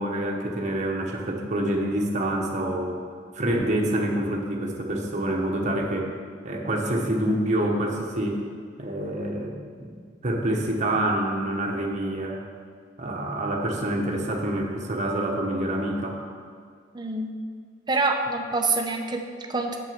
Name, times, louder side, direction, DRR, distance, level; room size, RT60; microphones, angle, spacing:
voice 1, 0.0-3.0 3.3-6.1 6.4-8.4 8.8-9.5 9.8-12.4 13.0-16.2, right 1 dB, 40° right, 0 dB, 1.1 m, -27 dB
voice 2, 16.9-17.4 17.9-19.8, right 3 dB, 25° right, 3 dB, 0.7 m, -26 dB
7.4 x 7.2 x 5.0 m, 2.1 s
head